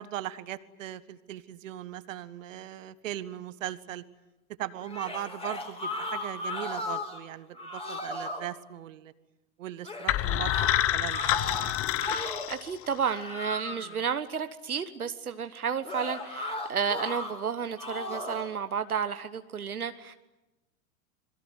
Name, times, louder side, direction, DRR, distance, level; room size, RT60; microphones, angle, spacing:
voice 1, 0.0-4.0 4.6-9.1 9.6-10.5 10.9-11.3 13.7-14.0, right 12 dB, 60° right, 15 dB, 1.4 m, -38 dB
sound 1, 4.8-7.2 7.6-8.5 9.8-12.6 13.0-14.0 15.8-17.3 17.8-18.5, left 2 dB, 15° left, 4.3 m, -36 dB
sound 2, 10.1-13.1, left 14 dB, 30° left, 0.9 m, -28 dB
voice 2, 12.5-20.1, right 7 dB, 80° right, 10 dB, 1.3 m, -32 dB
27.0 x 22.0 x 9.3 m, 1.0 s
figure-of-eight pair, 90°, 43 cm